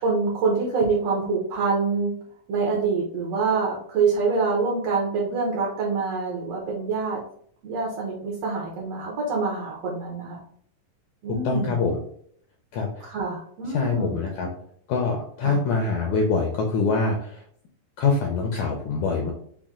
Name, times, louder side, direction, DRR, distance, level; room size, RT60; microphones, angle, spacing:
voice 1, 0.0-2.1 2.5-7.2 7.6-10.4 11.2-11.8 13.0-14.1 15.4-15.6, right 4 dB, 70° right, -2 dB, 1.5 m, -25 dB
voice 2, 11.4-12.0 12.7-13.1 13.7-14.5 14.9-17.4 18.0-19.3, left 4 dB, 85° left, 2 dB, 1.7 m, -24 dB
5.9 x 2.2 x 3.6 m, 0.62 s
omnidirectional pair, 4.1 m